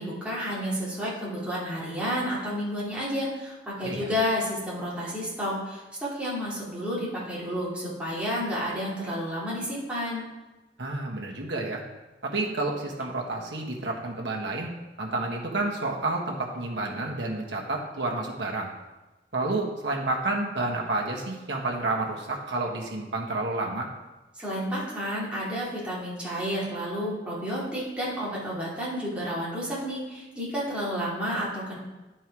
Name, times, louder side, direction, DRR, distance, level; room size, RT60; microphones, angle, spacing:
voice 1, 0.0-10.2 24.4-31.8, equal, 5° right, -8 dB, 2.7 m, -31 dB
voice 2, 10.8-11.8 12.2-14.7 15.0-18.7 19.3-23.9, right 2 dB, 65° right, -1 dB, 1.4 m, -30 dB
10.5 x 4.6 x 4.7 m, 1.1 s
head